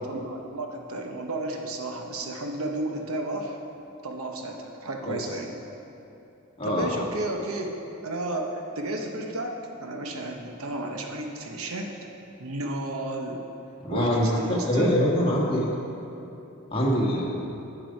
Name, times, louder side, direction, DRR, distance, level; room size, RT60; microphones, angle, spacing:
voice 1, 0.0-3.6 4.0-5.6 6.6-7.8 8.0-9.6 9.8-11.9 12.4-13.4 13.9-15.0, right 1 dB, 85° right, 2 dB, 1.0 m, -32 dB
voice 2, 13.8-15.7 16.7-17.3, equal, 25° left, -3 dB, 1.5 m, -24 dB
8.9 x 7.7 x 5.3 m, 3.0 s
head